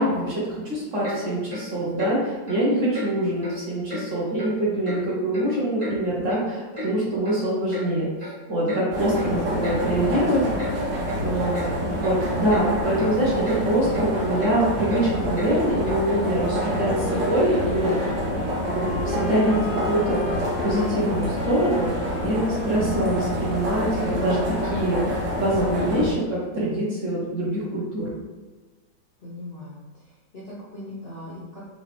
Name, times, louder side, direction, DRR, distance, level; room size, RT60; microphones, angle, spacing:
voice 1, 0.0-8.1 8.5-10.4 11.2-11.7 12.0-18.0 18.7-20.2 20.6-28.1, right 1 dB, 50° right, -7 dB, 1.2 m, -24 dB
Clock, 1.0-1.2 1.5-1.6 2.0-2.1 2.5-2.6 2.9-3.1 3.4-3.6 3.9-4.0 4.4-4.5 4.9-5.0 5.3-5.9 6.3-6.4 6.7-6.9 7.2-7.4 7.7-7.9 8.2-8.3 8.7-8.8 9.1-9.3 9.6-9.8 10.1-10.2 10.6-10.7 11.1-11.2 11.5-11.7 12.0-12.2 12.5-12.6 13.0-13.1 13.4-13.6 13.9-14.0 14.4-14.5 14.9-15.0 15.3-15.5 15.9-16.0, left 2 dB, 20° right, 1.2 m, -34 dB
sound 1, 8.9-26.1, equal, 80° right, 1.6 m, -27 dB
sound 2, 16.3-24.1, left 3 dB, 90° left, 1.4 m, -36 dB
voice 2, 29.2-31.7, left 1 dB, 50° left, -8 dB, 0.7 m, -40 dB
3.9 x 2.9 x 3.2 m, 1.3 s
omnidirectional pair, 2.0 m